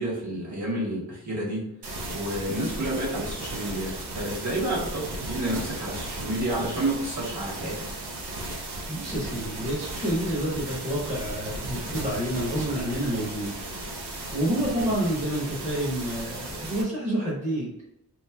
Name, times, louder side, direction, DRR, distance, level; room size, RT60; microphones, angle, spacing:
voice 1, 0.0-1.6 2.1-7.8 14.6-14.9, right 1 dB, 45° right, -7 dB, 1.4 m, -30 dB
sound 1, 1.8-16.8, right 2 dB, 85° right, 0.8 m, -36 dB
voice 2, 8.9-13.6 14.3-17.7, right 1 dB, 20° right, -6 dB, 0.8 m, -28 dB
3.7 x 3.0 x 2.2 m, 0.84 s
wide cardioid pair, 145°, 39 cm